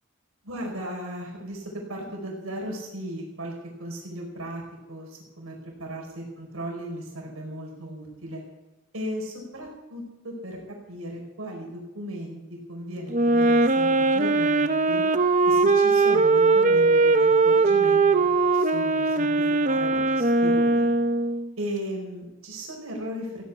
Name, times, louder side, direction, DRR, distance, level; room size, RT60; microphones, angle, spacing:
voice 1, 0.5-3.5 3.8-4.6 4.9-8.4 8.9-10.6 10.9-15.0 15.4-18.0 18.4-20.9 21.6-23.5, right 1 dB, 85° right, -1 dB, 4.9 m, -36 dB
Wind instrument woodwind instrument, 13.1-21.5, right 3 dB, 35° right, 0.7 m, -20 dB
15.5 x 9.6 x 8.6 m, 0.99 s
head